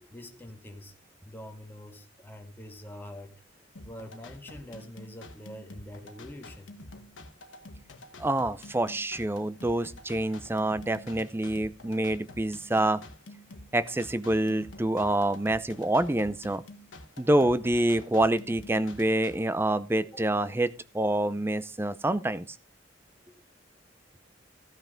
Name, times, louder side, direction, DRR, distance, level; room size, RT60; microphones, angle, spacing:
voice 1, 0.1-0.9 1.2-3.3 3.8-6.8, left 1 dB, 10° left, 1.7 m, -45 dB
sound 1, 3.8-19.4, left 2 dB, 85° left, 1.3 m, -48 dB
voice 2, 8.2-13.0 13.7-16.6 17.2-22.6, right 1 dB, 10° right, 0.5 m, -27 dB
14.5 x 5.8 x 5.1 m
head